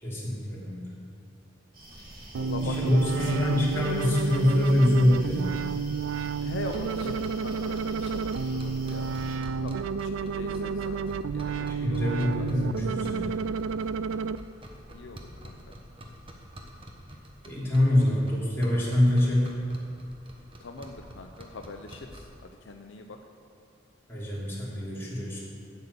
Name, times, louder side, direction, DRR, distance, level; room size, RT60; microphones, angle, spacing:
voice 1, 0.0-0.9 2.6-5.5 11.5-13.3 17.4-19.5 24.1-25.4, left 1 dB, 15° left, -7 dB, 2.9 m, -25 dB
sound 1, 1.7-9.4, right 1 dB, 50° right, 2.4 m, -46 dB
sound 2, 2.3-14.4, right 5 dB, 75° right, 0.3 m, -31 dB
voice 2, 2.4-3.7 6.4-9.1 9.6-11.0 11.3-12.5 14.9-15.6 18.1-18.2 20.6-23.2, left 2 dB, 65° left, 4 dB, 0.7 m, -41 dB
sound 3, 6.6-22.4, equal, 25° right, 1.1 m, -47 dB
8.4 x 8.2 x 6.8 m, 2.6 s
head